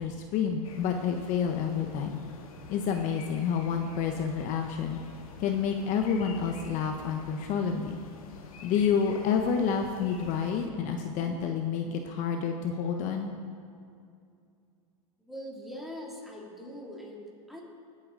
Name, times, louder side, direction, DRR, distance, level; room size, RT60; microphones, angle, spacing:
voice 1, 0.0-2.2 2.7-5.0 5.4-8.0 8.6-13.3, left 7 dB, 45° left, 4 dB, 0.9 m, -29 dB
sound 1, 0.6-10.7, left 5 dB, 90° left, 1.5 m, -48 dB
voice 2, 15.3-17.6, equal, ahead, -3 dB, 2.5 m, -42 dB
18.0 x 8.7 x 3.8 m, 2.4 s
supercardioid pair, 125°, 18 cm